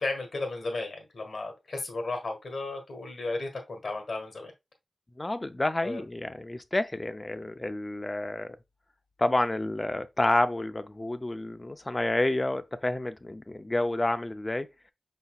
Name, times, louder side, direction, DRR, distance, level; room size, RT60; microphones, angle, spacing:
voice 1, 0.0-4.5 5.8-6.0, left 2 dB, 65° left, 1.4 m, -34 dB
voice 2, 5.2-8.6 9.2-14.7, left 1 dB, 25° left, 0.5 m, -29 dB
5.3 x 4.1 x 2.3 m
wide cardioid pair, 75°, 0 cm